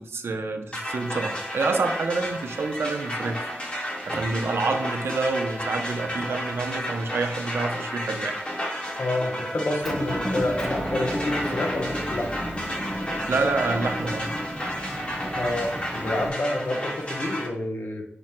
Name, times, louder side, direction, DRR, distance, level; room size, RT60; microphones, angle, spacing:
voice 1, 0.0-3.5 4.1-8.4 13.3-14.3, right 3 dB, 90° right, 5 dB, 0.5 m, -27 dB
sound 1, 0.7-17.5, equal, 30° left, 1.2 m, -32 dB
voice 2, 9.0-12.3 15.3-18.1, left 1 dB, 60° left, 2 dB, 0.8 m, -28 dB
Motor vehicle (road) / Engine, 9.8-16.3, equal, 5° left, 0.9 m, -33 dB
5.0 x 2.1 x 4.3 m, 0.78 s
wide cardioid pair, 90°, 4 cm